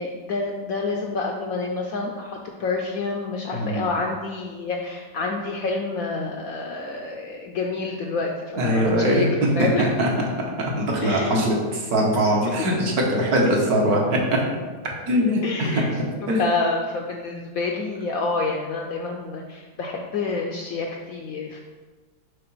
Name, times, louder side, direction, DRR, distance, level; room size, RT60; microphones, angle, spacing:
voice 1, 0.0-9.9 11.0-11.4 12.6-12.7 15.4-15.9 16.2-21.6, left 3 dB, 70° left, 1 dB, 0.8 m, -28 dB
voice 2, 3.5-3.9 8.6-10.1 10.6-14.4 15.1-16.4, equal, 60° right, -2 dB, 1.5 m, -22 dB
5.8 x 3.7 x 5.5 m, 1.4 s
omnidirectional pair, 1.9 m